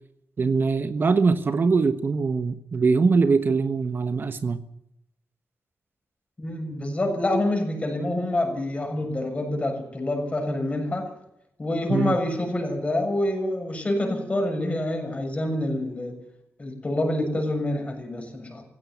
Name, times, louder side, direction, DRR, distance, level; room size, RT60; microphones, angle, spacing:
voice 1, 0.4-4.6 11.9-12.2, right 4 dB, 45° right, 10 dB, 1.2 m, -22 dB
voice 2, 6.4-11.1 11.6-16.2 16.6-18.6, left 1 dB, 25° left, 4 dB, 7.2 m, -27 dB
17.0 x 16.5 x 9.4 m, 0.79 s
wide cardioid pair, 120°, 5 cm